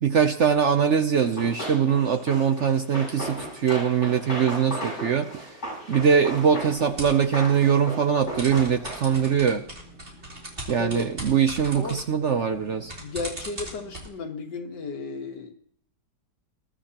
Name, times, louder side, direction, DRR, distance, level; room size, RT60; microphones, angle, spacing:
voice 1, 0.0-5.4 5.9-9.6 10.7-12.9, right 7 dB, 60° right, 7 dB, 0.8 m, -22 dB
Run, 1.2-9.4, equal, 40° left, 8.0 m, -36 dB
sound 1, 6.7-7.2 8.2-14.1, right 1 dB, 35° right, 4.0 m, -40 dB
voice 2, 10.8-11.1 11.7-12.0 13.0-15.5, left 4 dB, 75° left, 3 dB, 2.2 m, -34 dB
20.5 x 12.5 x 2.9 m, 0.66 s
omnidirectional pair, 1.8 m